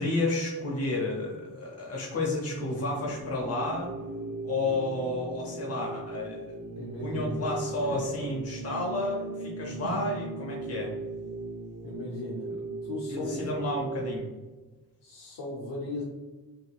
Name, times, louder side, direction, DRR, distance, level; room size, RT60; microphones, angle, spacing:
voice 1, 0.0-3.9 4.4-6.6 7.0-10.9 12.4-12.6 13.1-14.3, left 2 dB, 40° left, -2 dB, 0.7 m, -31 dB
sound 1, 2.9-14.2, right 3 dB, 50° right, 0.4 m, -38 dB
voice 2, 6.8-7.4 7.9-8.0 9.8-10.0 11.8-12.5 12.8-13.5 15.0-16.0, left 2 dB, 85° left, -3 dB, 0.7 m, -37 dB
3.6 x 2.8 x 2.3 m, 1.2 s
cardioid pair, 80°, 39 cm